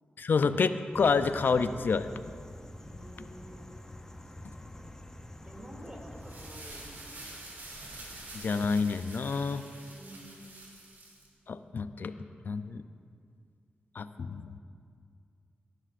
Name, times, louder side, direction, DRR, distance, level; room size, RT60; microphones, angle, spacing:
voice 1, 0.2-2.1 8.3-9.6 11.5-12.1 12.4-12.8 13.9-14.6, left 5 dB, 65° left, 11 dB, 0.5 m, -28 dB
sound 1, 0.9-6.6, left 1 dB, 15° left, 0.7 m, -47 dB
voice 2, 2.8-3.6 5.4-7.0 9.9-10.6, equal, 25° right, -1 dB, 2.6 m, -49 dB
sound 2, 6.1-11.3, right 2 dB, 65° right, 2.8 m, -47 dB
17.5 x 11.5 x 2.5 m, 2.2 s
cardioid pair, 60°, 4 cm